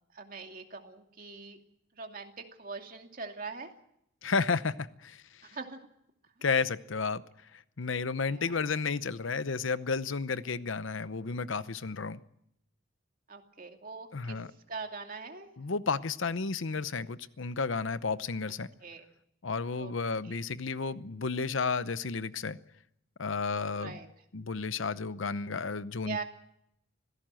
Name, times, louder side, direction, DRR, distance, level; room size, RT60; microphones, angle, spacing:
voice 1, 0.1-1.6 2.0-3.7 5.4-5.8 8.3-8.6 13.3-14.4 14.7-15.5 18.5-18.6 18.8-19.1 19.7-19.9 20.2-20.4 23.8-24.1 26.0-26.2, right 4 dB, 45° right, 2.6 m, -42 dB
voice 2, 4.2-5.2 6.4-7.2 7.8-12.2 14.1-14.5 15.6-18.7 19.4-22.6 23.2-23.9 24.3-26.2, left 4 dB, 75° left, 0.8 m, -32 dB
25.5 x 16.5 x 7.6 m
head